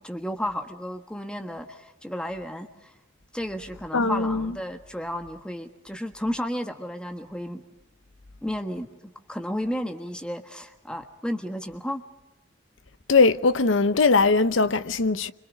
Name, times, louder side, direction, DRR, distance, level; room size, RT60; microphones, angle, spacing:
voice 1, 0.0-2.9 3.3-7.6 8.4-8.9 9.3-12.0, equal, 5° left, 1.4 m, -32 dB
voice 2, 3.9-4.6 13.1-15.3, left 4 dB, 90° left, 0.9 m, -20 dB
27.5 x 25.5 x 5.2 m
head